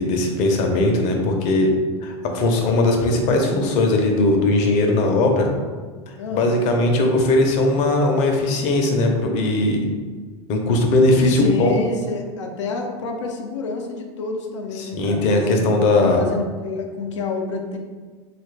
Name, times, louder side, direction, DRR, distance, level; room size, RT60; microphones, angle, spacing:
voice 1, 0.0-1.7 2.0-5.5 6.3-9.8 10.5-11.7 14.8-16.2, left 2 dB, 50° left, 2 dB, 0.7 m, -19 dB
voice 2, 6.2-6.5 11.1-15.7 16.2-17.8, left 4 dB, 90° left, 2 dB, 0.5 m, -28 dB
3.2 x 2.4 x 3.2 m, 1.5 s
hypercardioid pair, 115°, 15 cm